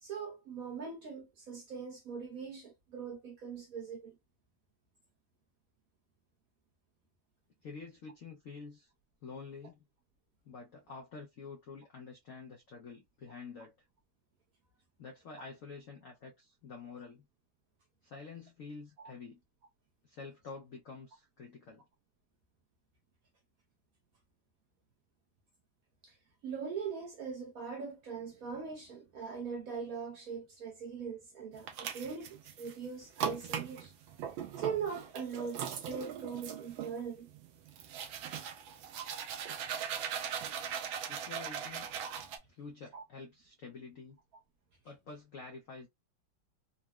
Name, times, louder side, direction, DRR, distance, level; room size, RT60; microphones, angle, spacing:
voice 1, 0.0-4.1 19.0-19.1 26.0-26.1 26.4-33.9 34.6-37.3 42.9-43.0, right 6 dB, 65° right, 0.9 m, -41 dB
voice 2, 7.6-8.9 9.2-9.8 10.4-13.8 15.0-17.3 18.0-19.4 20.0-21.8 41.1-41.9 42.5-44.2 44.8-45.9, left 4 dB, 75° left, 0.7 m, -48 dB
sound 1, 31.5-32.7 33.2-42.4, right 8 dB, 90° right, 1.4 m, -40 dB
3.8 x 2.0 x 2.2 m
omnidirectional pair, 2.1 m